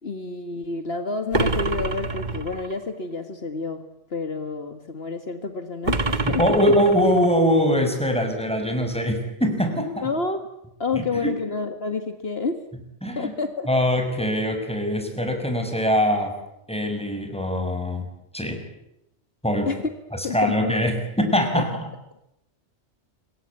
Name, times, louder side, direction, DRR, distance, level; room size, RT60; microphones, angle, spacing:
voice 1, 0.0-3.8 4.1-6.5 10.0-10.5 10.8-12.6 13.2-13.7 19.7-19.9 20.2-20.8 21.5-21.6, left 4 dB, 60° left, 8 dB, 2.0 m, -29 dB
sound 1, 1.3-2.8 5.9-7.4, right 2 dB, 40° right, 1.7 m, -26 dB
voice 2, 6.2-10.1 10.9-11.3 13.0-13.3 13.7-16.4 16.7-18.0 18.3-18.6 19.4-19.7 20.3-21.7, equal, 5° left, 5 dB, 6.2 m, -22 dB
27.0 x 23.0 x 8.6 m, 0.85 s
omnidirectional pair, 1.2 m